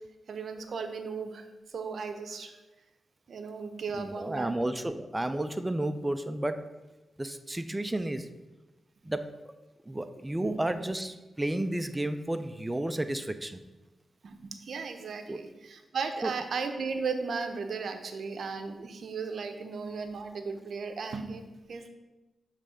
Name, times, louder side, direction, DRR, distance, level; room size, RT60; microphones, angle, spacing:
voice 1, 0.3-2.6 3.3-4.5 10.4-10.8 14.2-21.9, right 5 dB, 75° right, 7 dB, 0.6 m, -36 dB
voice 2, 3.9-6.7 7.2-8.3 9.0-9.5 9.9-13.6 15.3-15.4 16.2-16.3, right 1 dB, 20° right, 10 dB, 0.4 m, -32 dB
6.8 x 3.3 x 5.0 m, 1.1 s
cardioid pair, 50°, 0 cm